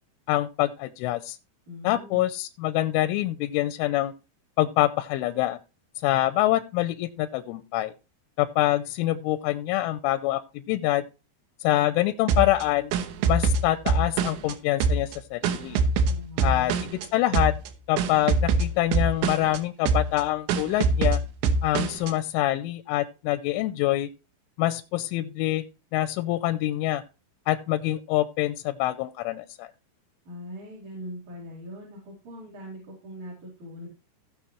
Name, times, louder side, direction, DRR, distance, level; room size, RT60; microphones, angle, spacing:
voice 1, 0.3-1.4 1.8-4.1 4.6-5.6 6.0-7.9 8.4-11.1 11.6-12.9 13.3-15.8 16.4-16.7 17.1-17.5 17.9-21.2 21.6-24.1 24.6-25.6 25.9-27.0 27.5-29.7, left 15 dB, 90° left, 11 dB, 3.2 m, -25 dB
voice 2, 1.7-2.3 16.1-16.9 30.2-33.9, equal, 40° right, -3 dB, 5.0 m, -41 dB
sound 1, 12.3-14.5 14.8-17.1 17.3-17.7 18.0-19.6 19.9-20.2 20.5-22.1, right 4 dB, 80° right, 3.3 m, -24 dB
17.5 x 6.6 x 3.1 m, 0.32 s
omnidirectional pair, 5.4 m